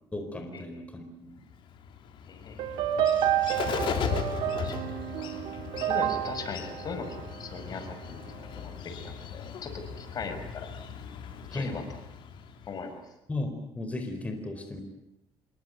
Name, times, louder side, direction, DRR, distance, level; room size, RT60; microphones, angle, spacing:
voice 1, 0.1-1.4 11.5-11.8 13.3-14.8, left 2 dB, 15° left, 5 dB, 4.4 m, -35 dB
Bird, 1.5-13.0, left 7 dB, 65° left, 3.8 m, -38 dB
voice 2, 2.3-2.6 4.6-4.8 5.9-8.2 8.6-10.7 11.5-11.8 12.7-13.0, left 4 dB, 45° left, 8 dB, 5.7 m, -39 dB
sound 1, 2.6-7.9, right 10 dB, 80° right, 2.3 m, -30 dB
27.0 x 23.0 x 9.3 m, 0.85 s
cardioid pair, 115°, 9 cm